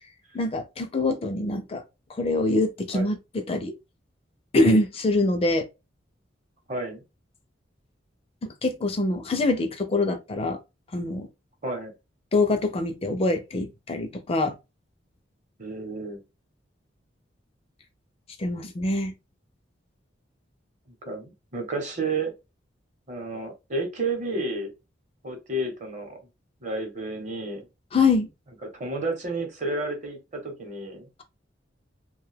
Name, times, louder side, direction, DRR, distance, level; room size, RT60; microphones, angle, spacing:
voice 1, 0.3-1.8 2.2-3.2 3.5-3.7 4.5-5.7 8.6-10.6 10.9-11.3 12.3-14.5 18.4-19.1 27.9-28.3, left 2 dB, 30° left, 0.4 m, -24 dB
voice 2, 6.7-7.0 11.6-11.9 15.6-16.2 21.0-22.3 23.1-24.7 25.2-26.2 26.6-27.6 28.6-31.1, right 2 dB, 40° right, 0.8 m, -31 dB
2.5 x 2.2 x 3.2 m
head